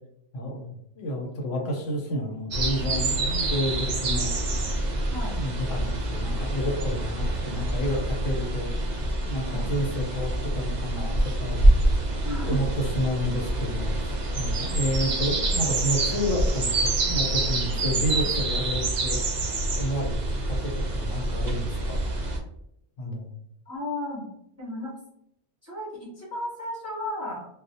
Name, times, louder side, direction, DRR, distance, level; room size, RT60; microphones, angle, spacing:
voice 1, 0.3-4.3 5.3-8.7 9.2-11.9 12.4-19.2 19.8-20.1 20.5-22.0 23.0-23.3, equal, 85° left, 1 dB, 1.0 m, -30 dB
sound 1, 2.5-22.4, right 2 dB, 70° right, 0.4 m, -26 dB
voice 2, 12.2-12.6 18.1-18.3 23.7-24.2 24.6-24.9 25.6-27.5, left 1 dB, 15° right, -7 dB, 0.6 m, -34 dB
2.3 x 2.0 x 2.6 m, 0.75 s
omnidirectional pair, 1.3 m